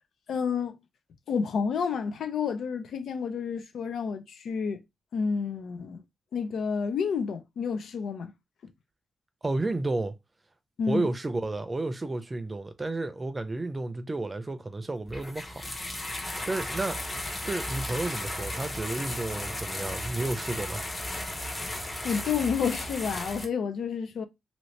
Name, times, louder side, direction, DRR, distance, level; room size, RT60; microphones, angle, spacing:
voice 1, 0.3-0.7 1.3-4.8 5.1-6.0 6.3-8.3 10.8-11.1 22.0-24.2, left 6 dB, 85° left, 0.5 m, -30 dB
voice 2, 9.4-10.1 10.9-15.6 16.5-17.0 17.4-20.8, right 2 dB, 25° right, 0.5 m, -31 dB
sound 1, 15.1-23.4, left 1 dB, 25° left, 0.9 m, -35 dB
2.8 x 2.7 x 3.2 m
cardioid pair, 100°, 0 cm